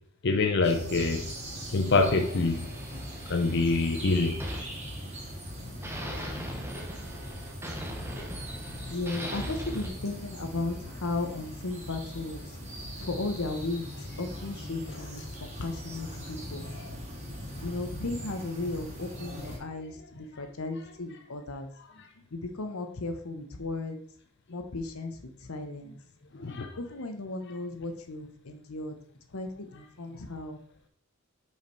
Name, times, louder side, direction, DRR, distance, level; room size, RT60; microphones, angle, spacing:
voice 1, 0.2-1.3 1.7-2.7 3.3-4.4 6.0-6.4 14.9-15.0 16.7-16.9 26.3-26.7, left 3 dB, 55° left, 4 dB, 0.6 m, -26 dB
sound 1, 0.6-19.6, equal, 30° right, 2.3 m, -40 dB
sound 2, 1.9-5.5 5.8-9.9, equal, 10° right, 0.9 m, -41 dB
voice 2, 8.9-12.5 13.0-13.8 14.2-16.7 17.6-21.7 22.3-24.0 24.5-25.1 25.4-26.0 26.8-29.0 29.3-30.6, left 2 dB, 85° left, 6 dB, 0.9 m, -35 dB
5.6 x 5.1 x 4.5 m, 0.62 s
head